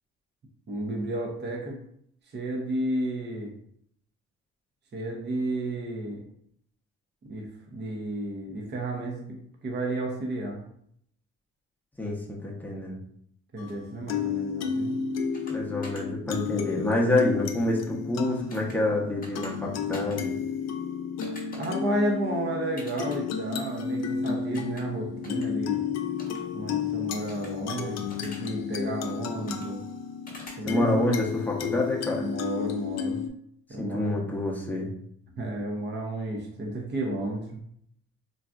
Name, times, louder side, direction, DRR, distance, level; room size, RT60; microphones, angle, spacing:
voice 1, 0.7-1.8 2.3-3.5 4.9-6.3 7.2-10.6 13.5-15.0 21.5-25.8 26.5-29.8 30.6-31.1 32.1-33.2 33.7-34.2 35.3-37.6, right 1 dB, 35° right, 0 dB, 0.7 m, -32 dB
voice 2, 12.0-13.0 15.5-20.3 30.7-32.3 33.8-34.9, left 1 dB, 5° left, -3 dB, 0.7 m, -27 dB
sound 1, 13.6-33.3, left 7 dB, 60° left, 0.5 m, -32 dB
sound 2, 15.3-15.5 15.8-16.0 18.5-18.8 19.2-19.5 19.9-20.2 21.2-21.7 22.8-23.2 24.5-24.8 25.2-25.5 26.2-26.4 27.3-27.5 28.1-28.5 29.5-29.7 30.3-30.6, left 1 dB, 30° left, 1.0 m, -44 dB
4.0 x 2.3 x 2.3 m, 0.69 s
cardioid pair, 90°, 30 cm